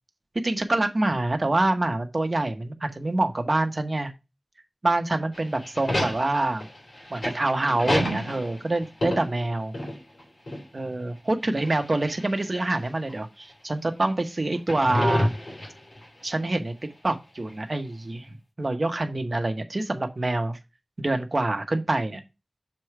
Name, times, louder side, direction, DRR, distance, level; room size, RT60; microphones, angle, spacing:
voice 1, 0.3-4.1 4.8-6.7 7.1-9.7 10.7-15.3 16.2-16.7 17.0-20.6 21.0-22.2, right 2 dB, 50° right, 6 dB, 0.9 m, -26 dB
sound 1, 5.3-10.2 10.5-10.6 11.6-12.4 13.1-13.2 14.6-16.0, left 1 dB, 85° left, 2.7 m, -29 dB
6.9 x 3.3 x 4.7 m, 0.26 s
wide cardioid pair, 65°, 0 cm